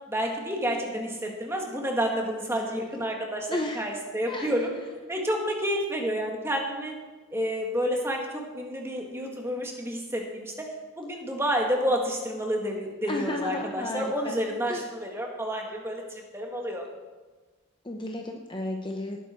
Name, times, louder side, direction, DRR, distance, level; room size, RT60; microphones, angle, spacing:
voice 1, 0.1-4.7 5.1-6.9 7.3-10.7 11.0-16.8, equal, 10° right, 1 dB, 1.9 m, -29 dB
voice 2, 2.7-3.1 3.5-3.8 4.3-4.5 13.1-14.4 14.6-14.9 17.8-19.2, left 1 dB, 20° left, 2 dB, 0.8 m, -33 dB
18.5 x 9.4 x 4.5 m, 1.3 s
head